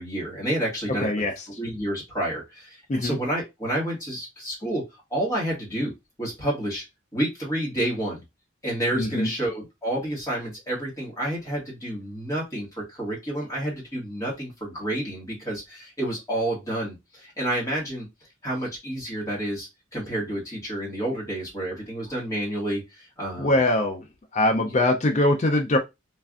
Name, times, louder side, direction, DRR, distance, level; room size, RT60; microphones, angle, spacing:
voice 1, 0.0-4.8 5.1-5.9 6.2-6.8 7.1-8.2 8.6-18.1 18.4-23.6 24.6-24.7, right 1 dB, 15° left, -4 dB, 1.4 m, -29 dB
voice 2, 1.0-1.3 2.9-3.2 8.9-9.3 23.4-24.0 24.3-25.8, left 1 dB, 35° left, 3 dB, 0.4 m, -22 dB
3.2 x 2.5 x 2.3 m, 0.22 s
head